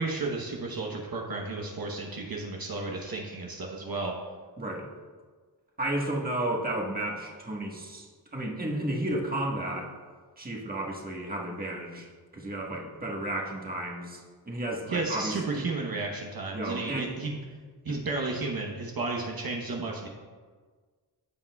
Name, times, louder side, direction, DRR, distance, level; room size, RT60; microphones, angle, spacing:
voice 1, 0.0-4.1 14.9-17.4 17.8-20.1, right 3 dB, 55° right, -1 dB, 1.1 m, -33 dB
voice 2, 4.6-4.9 5.8-9.9 10.4-12.1 12.3-15.7 16.5-17.1 17.9-18.0, right 1 dB, 20° right, -1 dB, 1.5 m, -33 dB
15.0 x 5.6 x 2.4 m, 1.5 s
cardioid pair, 75°, 43 cm